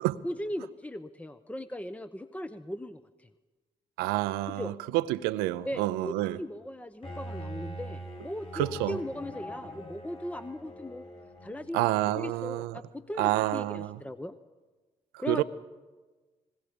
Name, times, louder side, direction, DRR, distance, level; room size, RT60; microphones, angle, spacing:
voice 1, 0.2-3.3 4.5-4.7 5.6-11.1 11.4-11.9 12.2-14.3 15.2-15.4, left 1 dB, 10° left, 0.9 m, -38 dB
voice 2, 4.0-6.4 8.5-9.0 11.7-12.7 13.2-13.9 15.3-15.4, right 16 dB, 90° right, 0.6 m, -28 dB
Bowed string instrument, 7.0-11.8, right 1 dB, 35° left, 6.2 m, -42 dB
28.0 x 20.5 x 5.2 m
hypercardioid pair, 45°, 16 cm